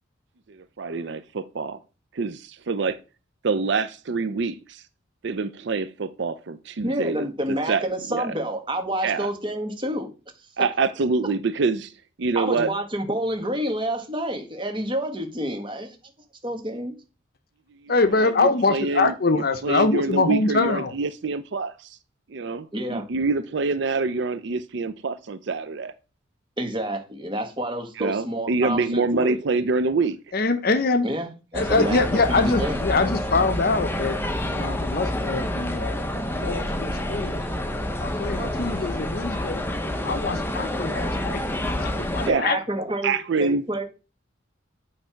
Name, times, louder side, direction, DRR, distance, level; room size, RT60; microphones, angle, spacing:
voice 1, 0.8-1.8 2.1-3.0 3.4-4.8 5.2-7.3 7.7-7.8 8.1-8.3 9.0-9.3 10.6-11.9 12.2-12.7 18.2-21.7 22.3-25.9 28.0-30.2 42.3-42.4 43.0-43.6, right 4 dB, 60° right, 0.5 m, -26 dB
voice 2, 6.8-10.1 10.6-10.7 12.3-15.9 16.4-17.0 22.7-23.1 26.6-29.4 31.0-31.3 31.5-32.8 42.3-43.8, right 1 dB, 25° right, 1.4 m, -28 dB
voice 3, 17.9-20.9 30.3-31.1 31.5-34.2 34.5-36.0 36.3-37.4 38.0-39.6 40.0-41.2 42.1-42.6, left 3 dB, 50° left, 0.6 m, -23 dB
sound 1, 31.5-42.3, left 1 dB, 10° left, 0.7 m, -28 dB
8.7 x 3.3 x 5.7 m
head